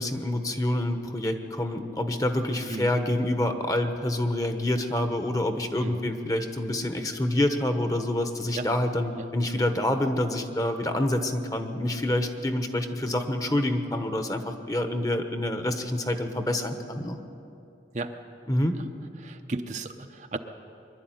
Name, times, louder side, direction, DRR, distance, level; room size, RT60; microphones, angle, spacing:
voice 1, 0.0-17.2 18.5-18.8, left 1 dB, 20° left, 7 dB, 1.1 m, -27 dB
voice 2, 5.8-6.1 8.5-8.7 9.2-9.3 17.9-18.1 19.2-20.4, right 3 dB, 40° right, 6 dB, 0.8 m, -34 dB
23.5 x 12.0 x 9.3 m, 2.7 s
head